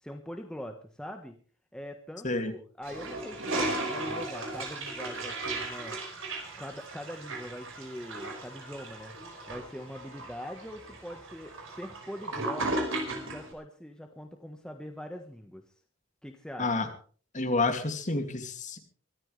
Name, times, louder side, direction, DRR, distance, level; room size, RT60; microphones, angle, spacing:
voice 1, 0.0-1.3 1.7-6.0 6.6-9.1 9.5-12.9 13.2-15.6 16.2-16.7, equal, 5° left, 3 dB, 1.3 m, -42 dB
Toilet flush, 2.8-13.5, right 2 dB, 70° right, 5.3 m, -36 dB
voice 2, 17.3-18.8, left 3 dB, 35° left, 5 dB, 2.6 m, -29 dB
23.5 x 13.5 x 3.4 m, 0.41 s
head